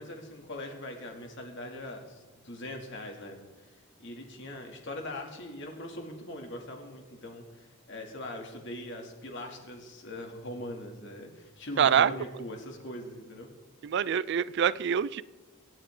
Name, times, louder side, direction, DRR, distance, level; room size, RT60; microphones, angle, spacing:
voice 1, 0.0-13.5, left 1 dB, 55° left, 2 dB, 2.6 m, -41 dB
voice 2, 11.8-12.1 13.8-15.2, right 8 dB, 55° right, 18 dB, 0.3 m, -25 dB
26.0 x 9.1 x 3.8 m, 1.2 s
head